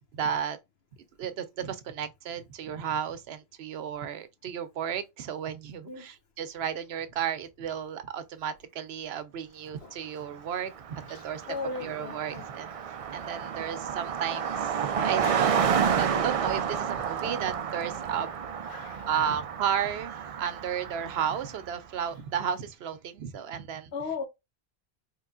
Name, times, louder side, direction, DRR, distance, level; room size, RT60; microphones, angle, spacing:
voice 1, 0.1-0.6 1.2-11.4 11.8-14.7 15.0-15.5 16.0-18.4 18.8-23.9, right 8 dB, 85° right, 0.9 m, -33 dB
Car passing by, 10.4-10.5 10.7-21.7, right 7 dB, 55° right, 0.4 m, -30 dB
voice 2, 11.1-12.5 13.1-13.2 15.2-15.4 18.7-19.4 23.9-24.2, left 4 dB, 80° left, 1.2 m, -37 dB
4.6 x 3.2 x 2.4 m
omnidirectional pair, 1.0 m